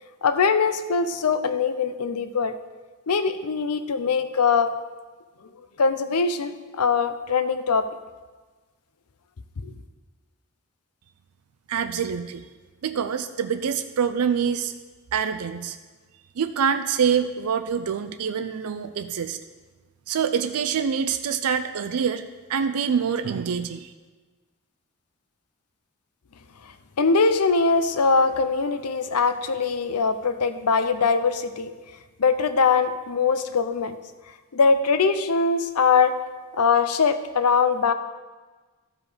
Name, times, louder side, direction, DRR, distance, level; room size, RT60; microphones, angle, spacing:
voice 1, 0.2-2.5 3.1-4.7 5.8-7.8 9.6-9.7 27.0-31.7 32.2-34.0 34.5-36.2 36.5-37.9, left 5 dB, 85° left, 10 dB, 0.6 m, -22 dB
voice 2, 11.7-12.4 12.8-14.7 15.1-15.8 16.4-19.4 20.1-22.2 22.5-23.9, right 7 dB, 70° right, 9 dB, 0.4 m, -25 dB
12.5 x 4.8 x 5.0 m, 1.3 s
head